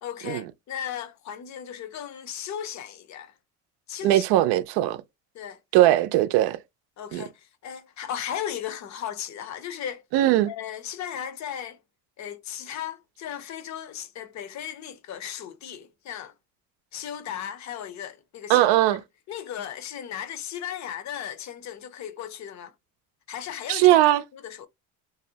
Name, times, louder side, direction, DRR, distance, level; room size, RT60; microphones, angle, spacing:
voice 1, 0.0-3.4 3.9-4.2 5.3-5.6 7.0-10.0 10.5-11.8 12.2-16.3 16.9-18.7 19.3-22.7 23.3-24.0 24.3-24.7, left 9 dB, 50° left, 0.6 m, -36 dB
voice 2, 4.0-5.0 5.7-6.6 7.1-7.2 10.1-10.5 18.5-19.0 23.7-24.2, right 14 dB, 85° right, 0.5 m, -19 dB
2.6 x 2.0 x 2.7 m
cardioid pair, 120°, 37 cm